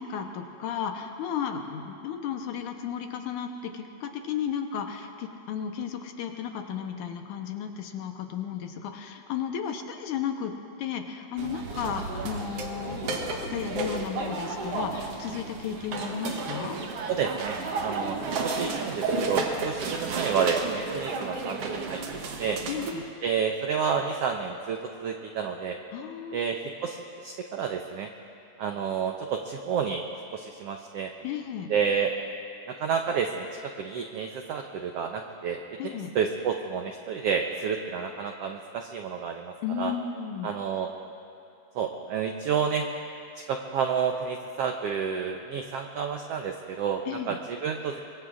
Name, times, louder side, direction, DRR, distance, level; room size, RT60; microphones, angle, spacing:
voice 1, 0.0-10.5 10.8-16.8 22.7-23.1 25.9-26.4 31.2-31.7 35.8-36.1 39.6-40.5 47.1-47.4, left 8 dB, 75° left, 4 dB, 2.3 m, -34 dB
sound 1, 11.4-22.9, right 3 dB, 60° right, 1.9 m, -32 dB
voice 2, 17.1-17.6 17.8-18.2 18.4-22.6 23.2-25.8 26.3-28.1 28.6-30.0 30.3-31.1 31.7-32.1 32.7-33.5 33.8-39.9 40.4-40.9 41.7-42.9 43.5-48.0, right 6 dB, 85° right, 3 dB, 1.3 m, -30 dB
24.0 x 23.5 x 2.5 m, 2.6 s
omnidirectional pair, 3.7 m